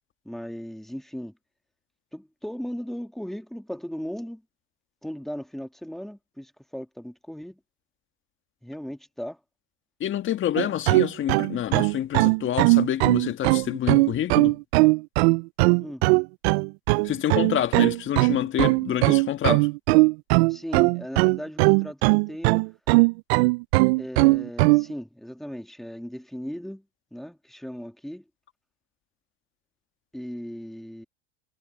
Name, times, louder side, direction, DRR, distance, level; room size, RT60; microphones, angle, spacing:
voice 1, 0.2-1.3 2.1-4.4 5.0-7.6 8.6-9.4 15.7-16.1 20.5-22.7 24.0-26.9 27.1-28.2 30.1-31.0, equal, ahead, 2.2 m, -37 dB
voice 2, 10.0-14.6 17.0-19.7, left 11 dB, 35° left, 1.7 m, -27 dB
sound 1, 10.6-24.8, right 25 dB, 70° right, 0.5 m, -19 dB
supercardioid pair, 110°, 34 cm